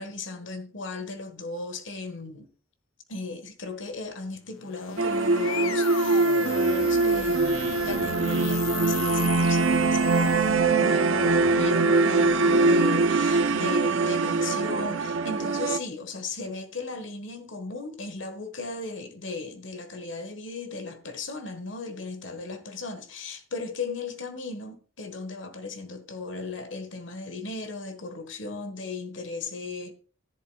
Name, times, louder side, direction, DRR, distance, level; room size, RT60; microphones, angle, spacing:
voice 1, 0.0-2.5 3.1-29.9, left 3 dB, 65° left, 1.4 m, -37 dB
sound 1, 4.5-10.8, left 8 dB, 80° left, 0.5 m, -36 dB
sound 2, 5.0-15.8, right 3 dB, 75° right, 0.7 m, -23 dB
13.5 x 11.0 x 2.3 m
head